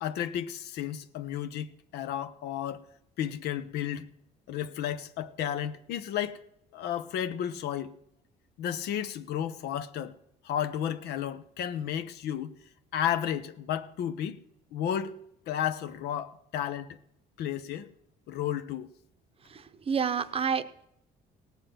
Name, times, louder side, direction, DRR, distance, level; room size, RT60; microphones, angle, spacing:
voice 1, 0.0-2.8 3.2-4.1 4.5-6.4 6.7-7.9 8.6-10.1 10.4-12.5 12.9-14.4 14.7-15.2 15.5-16.9 17.4-17.9 18.3-18.9, left 10 dB, 75° left, 0.9 m, -32 dB
voice 2, 19.5-20.9, right 6 dB, 35° right, 0.7 m, -30 dB
17.5 x 7.3 x 5.8 m
cardioid pair, 110°, 17 cm